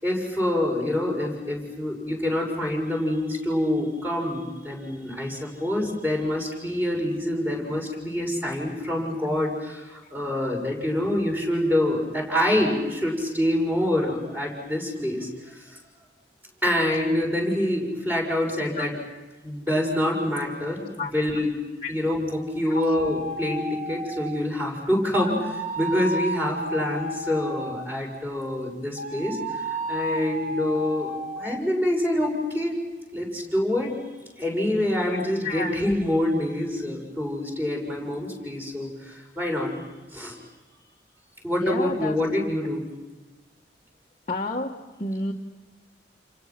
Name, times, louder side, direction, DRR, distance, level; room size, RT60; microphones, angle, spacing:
voice 1, 0.0-15.8 16.6-19.0 19.4-21.5 21.9-32.8 33.1-33.9 34.4-39.7 40.1-40.4 41.4-42.9, left 1 dB, 10° right, 0 dB, 6.5 m, -26 dB
sound 1, 22.7-24.5 25.1-28.0 29.0-31.6, right 1 dB, 45° right, 2.1 m, -33 dB
voice 2, 35.4-35.8 41.6-42.2 44.3-45.3, left 2 dB, 35° left, -5 dB, 1.5 m, -30 dB
30.0 x 30.0 x 6.1 m, 1.1 s
head